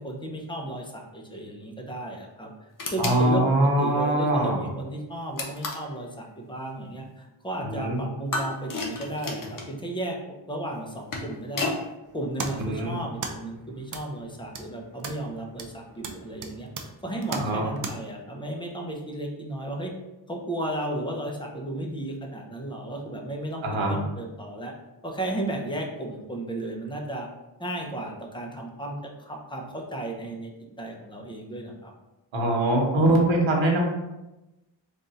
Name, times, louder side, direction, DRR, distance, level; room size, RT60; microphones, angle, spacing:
voice 1, 0.0-2.5 2.9-3.4 3.8-10.2 10.5-11.8 12.1-16.7 17.0-19.9 20.3-24.7 25.0-27.3 27.6-30.5 30.8-31.9, right 1 dB, 10° left, 0 dB, 0.7 m, -34 dB
sound 1, 2.8-3.2 5.4-5.9 8.3-9.7 10.8-11.8, left 3 dB, 45° left, 0.8 m, -32 dB
voice 2, 3.0-4.6 7.6-8.0 12.6-13.0 17.3-17.7 23.6-23.9 32.3-33.8, right 1 dB, 85° right, 0 dB, 1.1 m, -23 dB
sound 2, 12.0-17.9, right 4 dB, 45° right, 0.5 m, -38 dB
3.5 x 2.6 x 4.0 m, 0.98 s
wide cardioid pair, 105°, 46 cm